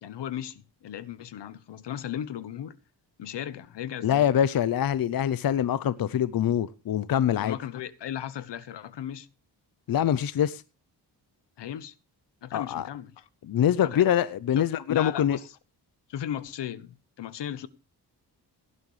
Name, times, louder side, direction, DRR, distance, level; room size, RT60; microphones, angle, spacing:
voice 1, 0.0-2.8 3.2-4.3 7.4-9.3 11.6-11.9 12.4-13.2 13.8-14.1 14.6-15.5 16.1-17.7, left 10 dB, 80° left, 1.1 m, -36 dB
voice 2, 4.0-7.6 9.9-10.6 12.5-12.9 13.5-15.4, left 10 dB, 55° left, 0.7 m, -24 dB
17.5 x 11.0 x 3.2 m
cardioid pair, 100°, 42 cm